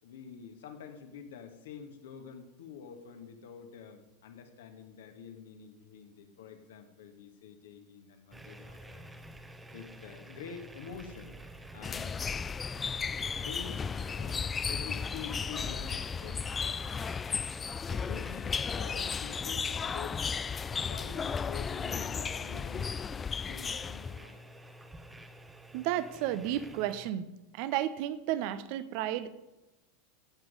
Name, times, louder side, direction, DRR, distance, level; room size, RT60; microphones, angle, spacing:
voice 1, 0.0-9.0 9.7-11.3 11.7-12.2 12.8-16.8 17.9-20.2 20.7-23.2 23.5-24.4, left 7 dB, 60° left, 6 dB, 1.5 m, -47 dB
sound 1, 8.3-27.1, right 1 dB, 5° right, 1.0 m, -50 dB
sound 2, 11.8-24.3, left 6 dB, 20° left, 0.3 m, -35 dB
voice 2, 25.7-27.3 27.5-29.3, right 12 dB, 50° right, 14 dB, 0.7 m, -32 dB
15.5 x 7.9 x 5.3 m, 1.0 s
figure-of-eight pair, 85°, 0 cm